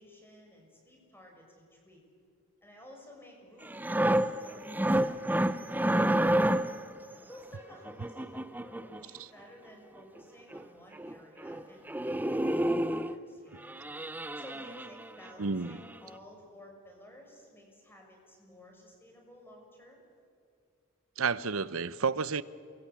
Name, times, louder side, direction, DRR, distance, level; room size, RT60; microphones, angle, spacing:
voice 1, 0.0-2.0 2.6-6.4 7.3-13.8 14.3-20.0, equal, 10° left, 1 dB, 6.5 m, -54 dB
sound 1, 3.6-6.9 7.9-9.0 10.2-10.3 10.5-10.6 10.9-11.1 11.4-11.6 11.9-13.2 13.6-15.3 15.7-15.9, right 1 dB, 10° right, 0.7 m, -29 dB
voice 2, 15.4-15.8 21.2-22.4, right 5 dB, 75° right, 16 dB, 0.8 m, -30 dB
28.5 x 22.5 x 8.5 m, 2.3 s
head